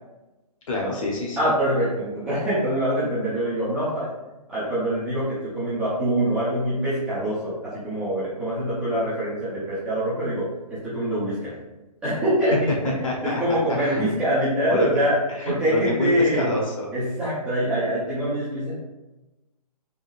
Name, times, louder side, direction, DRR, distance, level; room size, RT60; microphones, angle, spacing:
voice 1, 0.7-1.4 13.0-14.0 14.7-14.9 15.4-16.9, left 2 dB, 50° left, -2 dB, 1.3 m, -27 dB
voice 2, 1.4-4.1 4.5-11.5 12.0-15.2 15.4-16.5 16.9-18.7, right 1 dB, 5° right, -14 dB, 0.5 m, -24 dB
4.0 x 3.9 x 2.6 m, 1.0 s
hypercardioid pair, 170°, 21 cm